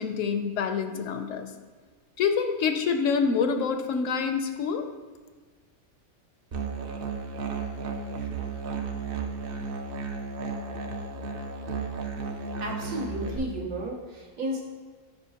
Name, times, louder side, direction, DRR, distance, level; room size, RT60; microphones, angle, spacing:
voice 1, 0.0-1.5 2.2-4.9, left 6 dB, 70° left, 7 dB, 0.9 m, -26 dB
Musical instrument, 6.5-13.4, right 4 dB, 55° right, 0.7 m, -34 dB
voice 2, 12.6-14.6, right 1 dB, 80° right, -2 dB, 1.6 m, -33 dB
9.1 x 5.5 x 2.8 m, 1.4 s
omnidirectional pair, 1.5 m